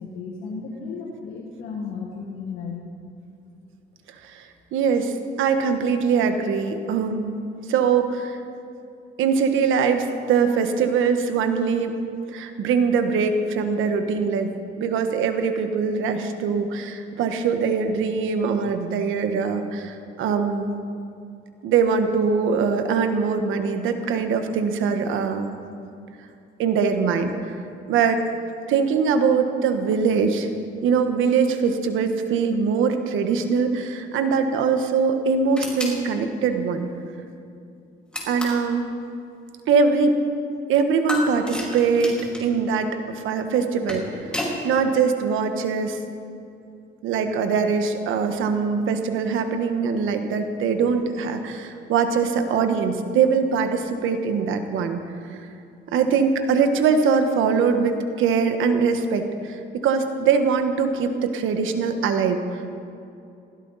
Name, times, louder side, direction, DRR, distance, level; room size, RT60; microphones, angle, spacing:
voice 1, 0.0-2.8, left 5 dB, 90° left, -2 dB, 1.8 m, -34 dB
voice 2, 4.2-7.4 7.7-8.4 9.2-11.9 12.3-14.5 14.8-20.8 21.6-25.5 26.6-27.6 27.9-28.2 28.7-30.5 30.8-36.9 38.3-38.9 39.7-40.2 40.7-44.0 44.6-46.0 47.0-55.0 55.3-55.4 55.9-62.7, right 5 dB, 85° right, 7 dB, 1.3 m, -22 dB
sound 1, 35.6-36.0 38.1-38.7 41.1-42.5 43.6-44.6, left 1 dB, 5° left, 4.3 m, -31 dB
20.0 x 16.0 x 4.2 m, 2.5 s
cardioid pair, 90°, 20 cm